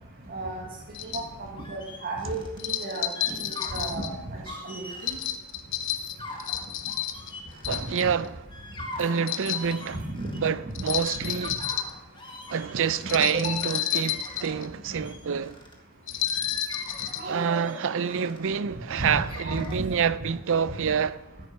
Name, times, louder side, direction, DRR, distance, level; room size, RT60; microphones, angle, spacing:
voice 1, 0.3-0.7 1.0-3.1 3.4-4.4 4.6-5.2 9.9-10.4 11.2-11.3 13.3-13.5 17.2-17.7 19.0-19.2 19.4-20.0, right 2 dB, 45° right, 1.8 m, -34 dB
sound 1, 0.9-1.3 2.6-4.1 5.0-7.3 7.6-8.3 9.2-9.7 10.7-11.9 12.9-14.7 16.1-17.2, left 10 dB, 60° left, 0.9 m, -30 dB
sound 2, 1.6-2.6 3.0-4.0 4.4-5.3 5.8-8.1 8.5-10.5 10.9-14.6 14.9-15.7 16.1-18.4 18.9-19.7, left 2 dB, 20° left, 1.8 m, -42 dB
voice 2, 7.7-8.5 9.0-10.0 10.4-11.6 12.5-15.6 17.3-21.2, right 7 dB, 60° right, 0.5 m, -27 dB
14.0 x 8.4 x 5.9 m
head